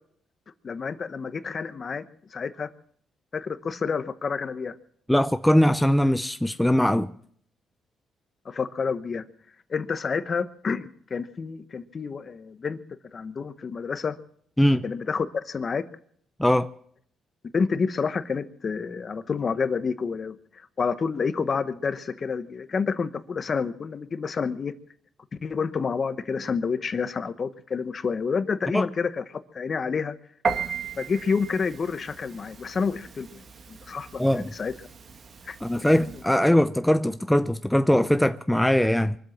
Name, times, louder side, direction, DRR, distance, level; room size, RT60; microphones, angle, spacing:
voice 1, 0.6-2.0 2.3-2.7 3.3-4.7 8.4-9.2 9.7-12.8 13.1-14.2 14.8-15.8 17.5-24.7 25.4-30.1 31.0-34.7 35.5-35.6 36.4-36.5, left 5 dB, 40° left, 1.0 m, -29 dB
voice 2, 5.1-7.1 14.6-14.8 16.4-16.7 28.7-28.9 34.2-34.5 35.6-39.2, left 1 dB, 5° left, 0.5 m, -21 dB
Piano, 30.4-36.3, right 5 dB, 50° right, 1.7 m, -36 dB
23.5 x 7.8 x 7.4 m
cardioid pair, 90°, 0 cm